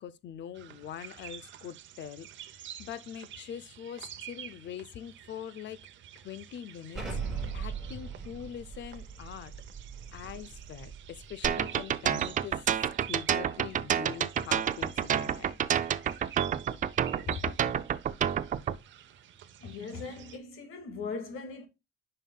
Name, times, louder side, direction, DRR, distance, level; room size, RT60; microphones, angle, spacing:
voice 1, 0.0-2.3 2.8-5.8 6.2-9.5 10.1-12.6 13.0-15.6 17.3-17.5, left 9 dB, 60° left, 0.6 m, -43 dB
sound 1, 0.5-20.4, right 11 dB, 60° right, 0.8 m, -49 dB
Explosion, 6.9-11.6, right 5 dB, ahead, 3.5 m, -39 dB
sound 2, 11.4-18.8, right 9 dB, 40° right, 0.4 m, -28 dB
voice 2, 19.6-21.7, left 4 dB, 85° left, 2.1 m, -39 dB
9.2 x 5.6 x 2.3 m
cardioid pair, 165°, 21 cm